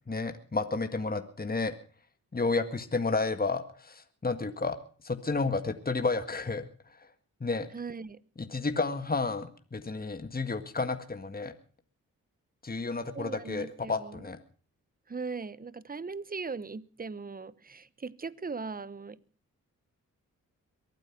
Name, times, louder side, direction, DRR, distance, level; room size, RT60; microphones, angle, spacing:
voice 1, 0.1-1.8 2.3-4.8 5.0-6.7 7.4-7.7 8.4-11.5 12.6-14.4, left 3 dB, 25° left, 8 dB, 1.8 m, -31 dB
voice 2, 7.7-8.2 13.1-14.3 15.1-19.2, right 4 dB, 25° right, 19 dB, 0.9 m, -39 dB
23.0 x 9.1 x 6.0 m, 0.43 s
supercardioid pair, 45°, 35 cm